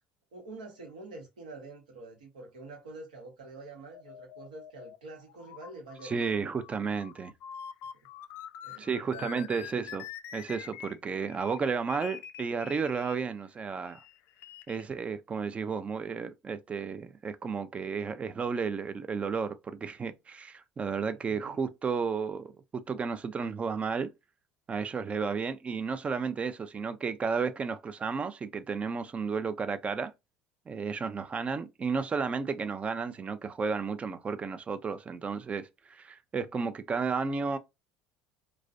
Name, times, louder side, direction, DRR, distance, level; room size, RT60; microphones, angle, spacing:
voice 1, 0.3-6.4 8.6-9.9 21.2-21.6, right 3 dB, 85° right, 1.0 m, -47 dB
sound 1, 3.9-13.2 13.9-14.8, left 10 dB, 60° left, 0.3 m, -46 dB
voice 2, 6.0-7.3 8.8-10.0 10.3-14.0 14.7-24.1 24.7-30.1 30.7-37.6, right 5 dB, 30° right, 0.4 m, -33 dB
2.4 x 2.1 x 2.4 m
hypercardioid pair, 70°, 4 cm